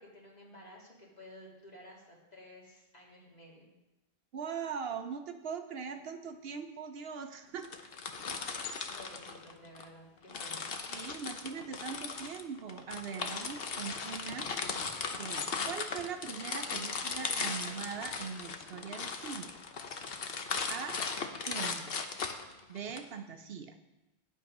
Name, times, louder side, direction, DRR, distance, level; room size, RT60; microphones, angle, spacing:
voice 1, 0.0-3.7 8.9-10.6 14.8-14.9, left 1 dB, 40° left, -4 dB, 2.8 m, -53 dB
voice 2, 4.3-7.9 10.9-14.8 15.2-19.5 20.7-21.0 21.5-21.9 22.7-23.8, right 6 dB, 65° right, 7 dB, 0.9 m, -41 dB
sound 1, 7.6-9.9 10.3-23.0, left 5 dB, 60° left, 1.1 m, -37 dB
9.9 x 8.6 x 5.3 m, 1.0 s
omnidirectional pair, 1.1 m